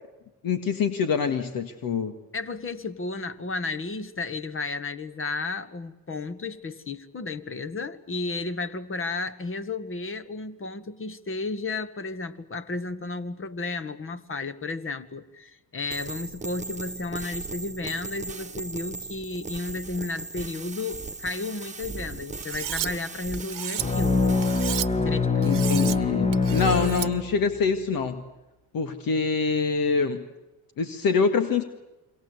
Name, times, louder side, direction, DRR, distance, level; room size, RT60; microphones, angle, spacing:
voice 1, 0.4-2.1 25.4-28.2 28.7-30.2 30.8-31.6, left 5 dB, 65° left, 8 dB, 2.0 m, -25 dB
voice 2, 2.3-24.3 25.0-25.6, left 3 dB, 35° left, 13 dB, 1.8 m, -33 dB
sound 1, 15.9-24.8, right 3 dB, 20° right, 1.5 m, -38 dB
Cutlery silverware, 22.4-22.9 23.3-23.8 24.4-24.9 25.4-26.0 26.3-27.1, right 12 dB, 60° right, 1.2 m, -32 dB
sound 2, 23.8-27.6, left 4 dB, 15° left, 1.7 m, -24 dB
27.5 x 23.5 x 8.3 m, 1.0 s
supercardioid pair, 75°, 38 cm